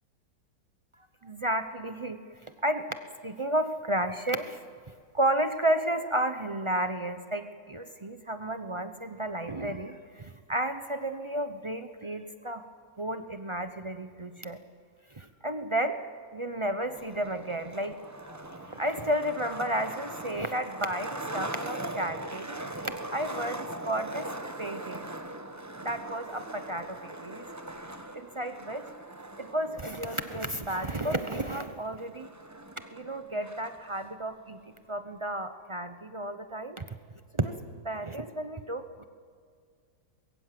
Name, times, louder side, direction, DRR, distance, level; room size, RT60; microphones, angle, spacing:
voice 1, 1.2-2.2 2.6-2.8 3.2-4.6 5.1-12.6 13.0-14.6 15.1-16.0 16.3-18.0 18.2-18.4 18.6-24.3 24.6-25.1 25.8-27.4 28.1-28.9 29.4-32.3 32.9-34.6 34.9-36.9 37.3-37.5 37.8-39.0, right 1 dB, 50° right, 8 dB, 0.3 m, -32 dB
Skateboard, 16.9-33.9, right 1 dB, 15° right, 0.7 m, -41 dB
24.0 x 21.5 x 7.6 m, 2.1 s
omnidirectional pair, 2.0 m